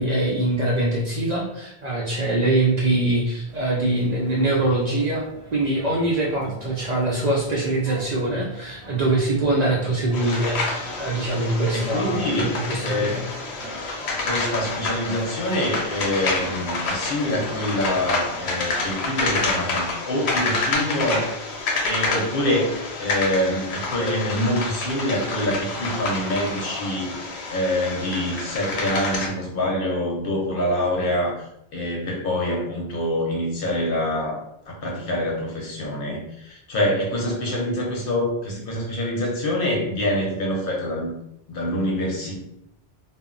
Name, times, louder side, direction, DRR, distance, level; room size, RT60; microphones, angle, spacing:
voice 1, 0.0-5.2 5.5-13.2, right 2 dB, 55° right, -4 dB, 0.5 m, -23 dB
sound 1, 3.5-18.9, right 1 dB, 80° right, 0.9 m, -42 dB
sound 2, 10.1-29.3, left 3 dB, 90° left, 0.9 m, -28 dB
voice 2, 11.7-12.5 12.8-13.2 14.2-21.4 21.8-22.7 23.0-27.1 27.5-31.3 31.7-34.4 34.7-41.1 41.5-42.4, left 1 dB, 60° left, -1 dB, 0.8 m, -25 dB
2.0 x 2.0 x 3.6 m, 0.80 s
omnidirectional pair, 1.1 m